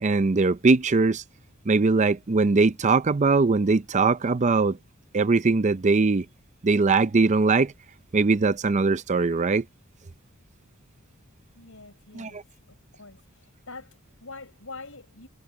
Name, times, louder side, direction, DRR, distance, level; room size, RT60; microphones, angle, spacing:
voice 1, 0.0-1.2 1.7-4.8 5.1-6.3 6.6-7.7 8.1-9.6 12.1-12.4, right 3 dB, 35° right, 0.5 m, -21 dB
voice 2, 11.6-12.4 12.7-15.3, left 3 dB, 70° left, 7.0 m, -45 dB
head